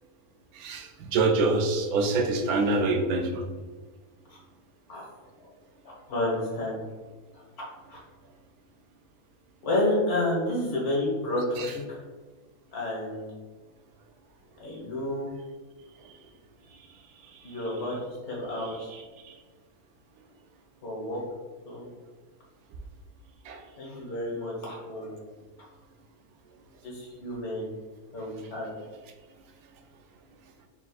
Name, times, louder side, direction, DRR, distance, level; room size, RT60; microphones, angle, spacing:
voice 1, 0.5-3.4 11.6-11.7 19.3-19.4 23.5-23.6, right 3 dB, 80° right, 5 dB, 1.1 m, -25 dB
voice 2, 5.8-6.8 7.3-7.4 7.9-8.0 9.6-12.0 12.7-13.3 14.6-15.3 17.4-18.0 18.3-18.9 20.8-21.2 21.7-21.8 23.8-25.2 26.8-27.7 28.1-28.7, left 1 dB, 80° left, -4 dB, 1.8 m, -30 dB
4.1 x 2.4 x 4.2 m, 1.3 s
omnidirectional pair, 1.5 m